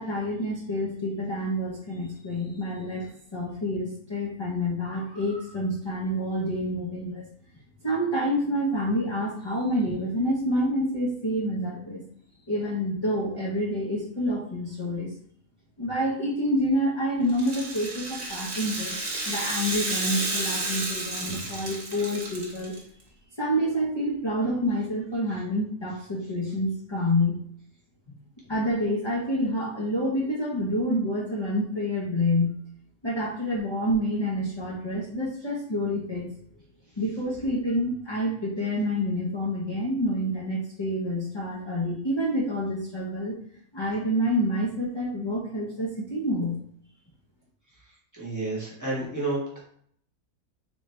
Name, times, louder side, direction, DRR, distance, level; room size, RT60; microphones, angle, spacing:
voice 1, 0.0-7.3 7.8-12.0 12.5-15.1 15.8-22.8 23.4-27.4 28.5-32.5 33.0-36.3 37.0-43.4 43.7-46.6, equal, 30° left, -5 dB, 0.5 m, -28 dB
Rattle (instrument), 17.3-22.8, right 2 dB, 40° right, 1.1 m, -31 dB
voice 2, 47.7-49.6, right 2 dB, 15° right, -6 dB, 1.0 m, -31 dB
3.8 x 3.1 x 3.2 m, 0.64 s
omnidirectional pair, 1.6 m